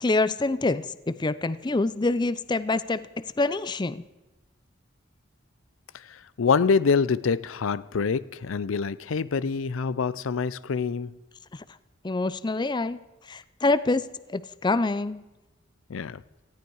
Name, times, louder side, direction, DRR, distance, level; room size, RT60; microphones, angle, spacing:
voice 1, 0.0-4.0 11.5-11.6 12.0-13.0 13.3-14.0 14.3-15.2, left 2 dB, 20° left, 0.5 m, -26 dB
voice 2, 5.9-11.1 15.9-16.2, left 5 dB, 90° left, 0.5 m, -26 dB
18.5 x 14.5 x 4.7 m
head